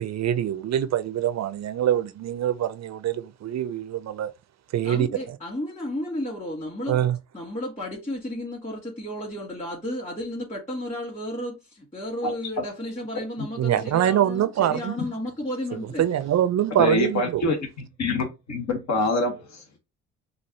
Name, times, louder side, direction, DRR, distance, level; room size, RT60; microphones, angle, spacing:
voice 1, 0.0-4.3 4.7-5.4 6.9-7.2 13.6-15.0 16.0-17.4, right 11 dB, 50° right, 0.6 m, -24 dB
voice 2, 4.8-7.0 7.3-16.0, left 1 dB, 20° left, 2.5 m, -33 dB
voice 3, 16.8-17.6 18.0-19.8, left 2 dB, 55° left, 1.5 m, -25 dB
6.2 x 2.6 x 2.9 m
hypercardioid pair, 50°, 34 cm